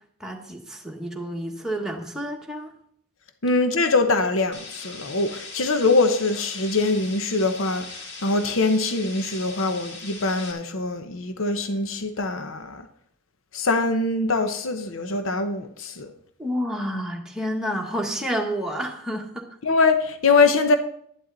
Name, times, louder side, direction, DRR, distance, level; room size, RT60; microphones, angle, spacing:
voice 1, 0.2-2.7 16.4-19.5, equal, 5° right, 1.4 m, -29 dB
voice 2, 3.4-12.9 13.5-16.1 19.6-20.8, left 3 dB, 70° left, 0.9 m, -23 dB
sound 1, 4.5-10.5, left 3 dB, 55° left, 2.2 m, -40 dB
11.5 x 11.0 x 4.0 m
head